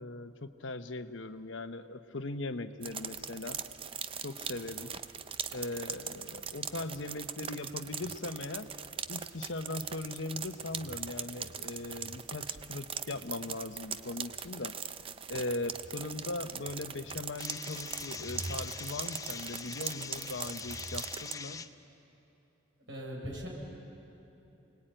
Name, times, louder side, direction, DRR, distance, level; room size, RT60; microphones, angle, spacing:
voice 1, 0.0-3.6 4.2-4.9 5.5-8.7 9.1-14.8 15.3-21.7, left 2 dB, 75° left, 10 dB, 1.0 m, -39 dB
sound 1, 2.8-21.3, right 7 dB, 30° right, 0.6 m, -41 dB
sound 2, 17.4-21.7, left 5 dB, 15° left, 0.5 m, -43 dB
voice 2, 22.9-23.5, equal, 75° right, -2 dB, 6.6 m, -39 dB
28.5 x 20.0 x 9.1 m, 3.0 s
head